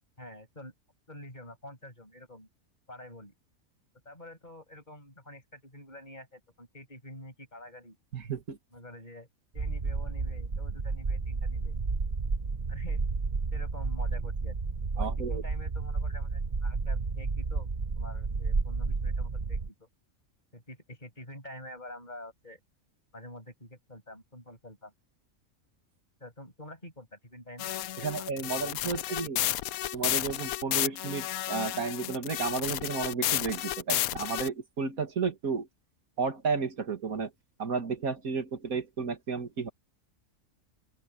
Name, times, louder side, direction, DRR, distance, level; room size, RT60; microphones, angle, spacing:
voice 1, 0.2-0.7 1.1-2.5 2.9-3.3 4.0-8.0 8.7-9.3 9.5-11.7 12.7-13.1 13.5-14.6 14.9-17.7 17.9-19.9 20.5-22.6 23.1-24.9 26.2-29.2, left 1 dB, 30° left, 8.2 m, -47 dB
voice 2, 8.1-8.6 15.0-15.4 28.0-29.4 29.9-35.7 36.2-37.3 37.6-39.7, right 5 dB, 85° right, 2.3 m, -32 dB
sound 1, 9.6-19.7, right 4 dB, 35° right, 1.1 m, -31 dB
sound 2, 27.6-34.5, left 13 dB, 85° left, 1.1 m, -32 dB
open air
omnidirectional pair, 1.5 m